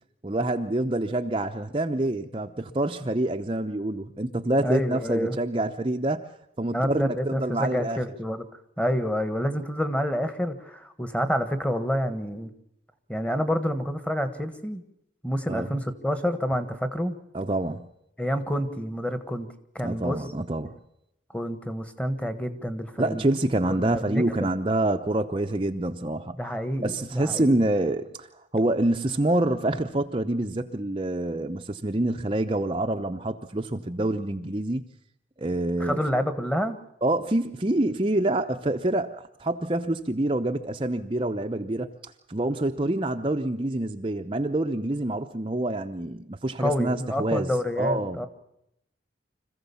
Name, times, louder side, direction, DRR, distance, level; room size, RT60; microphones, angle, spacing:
voice 1, 0.2-6.3 6.6-8.0 15.5-15.7 17.3-17.8 19.8-20.8 23.0-26.4 26.8-28.3 28.5-34.8 35.4-36.0 37.0-39.1 39.4-41.9 42.3-47.5 47.8-48.3, right 1 dB, 25° right, 5 dB, 0.7 m, -26 dB
voice 2, 4.6-5.4 6.7-8.5 8.8-12.5 13.1-14.8 15.2-17.1 18.2-19.5 19.7-20.2 21.3-23.2 23.7-24.5 26.4-27.6 35.8-36.8 46.6-48.3, equal, 5° left, 9 dB, 1.4 m, -28 dB
26.0 x 15.5 x 7.0 m, 0.81 s
head